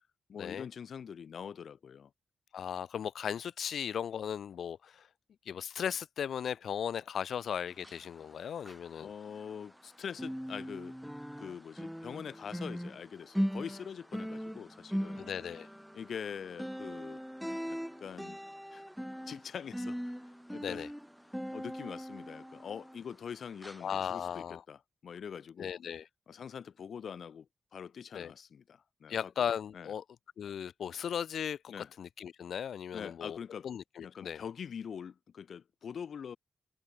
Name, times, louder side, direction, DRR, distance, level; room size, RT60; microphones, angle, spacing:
voice 1, 0.3-2.1 9.0-11.0 11.4-15.2 15.9-17.2 17.7-18.4 18.7-18.8 19.3-20.1 20.5-20.8 21.5-25.7 26.3-29.3 29.7-29.9 31.7-31.9 32.9-33.7 34.0-36.4, left 7 dB, 65° left, 4.1 m, -44 dB
voice 2, 2.5-5.1 5.4-9.1 15.2-15.7 20.6-20.9 23.8-24.6 25.6-26.1 28.1-28.3 29.1-30.0 30.4-33.4 33.6-34.4, left 8 dB, 85° left, 1.5 m, -37 dB
sound 1, 7.7-9.9 10.1-23.3 23.6-23.8 24.3-24.4, equal, ahead, 3.6 m, -40 dB
wide cardioid pair, 155°, 0 cm